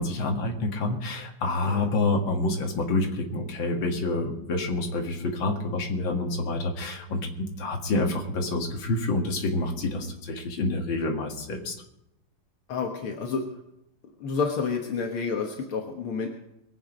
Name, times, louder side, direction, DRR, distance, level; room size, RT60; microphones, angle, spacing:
voice 1, 0.0-11.8, left 2 dB, 60° left, 2 dB, 2.5 m, -28 dB
voice 2, 12.7-13.5 14.2-16.3, left 5 dB, 75° left, 2 dB, 2.2 m, -29 dB
22.5 x 8.0 x 5.2 m, 0.84 s
omnidirectional pair, 2.4 m